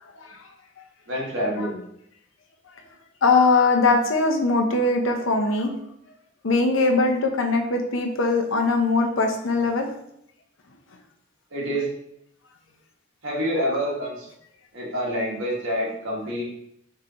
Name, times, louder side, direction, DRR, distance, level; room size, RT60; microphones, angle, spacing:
voice 1, 1.1-1.8 11.5-11.9 13.2-14.3 14.7-16.4, equal, 80° right, -3 dB, 1.4 m, -27 dB
voice 2, 3.2-5.7 6.4-9.9, left 3 dB, 85° left, 4 dB, 0.7 m, -21 dB
4.7 x 3.8 x 2.8 m, 0.74 s
head